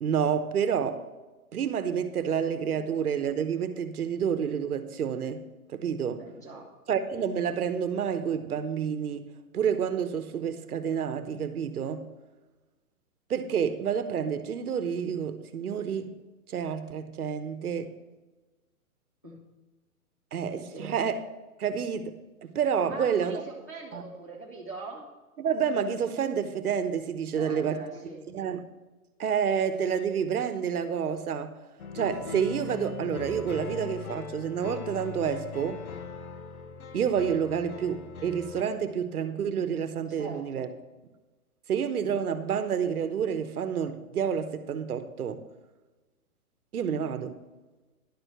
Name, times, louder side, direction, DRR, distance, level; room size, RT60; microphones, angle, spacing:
voice 1, 0.0-1.0 1.5-5.4 5.7-6.2 6.9-9.3 9.5-12.1 13.3-16.1 16.5-17.9 20.3-21.2 21.6-23.4 23.9-24.0 25.4-27.8 28.3-28.6 29.2-31.5 31.9-35.8 36.9-40.7 41.7-45.4 46.7-47.4, right 7 dB, 90° right, 1.1 m, -29 dB
voice 2, 6.2-6.7 19.2-19.4 20.7-20.8 22.8-25.1 27.4-28.2 40.2-40.7, right 3 dB, 15° left, 0.6 m, -42 dB
sound 1, 31.8-38.6, left 6 dB, 75° left, 1.2 m, -40 dB
11.0 x 4.7 x 6.6 m
hypercardioid pair, 180°, 43 cm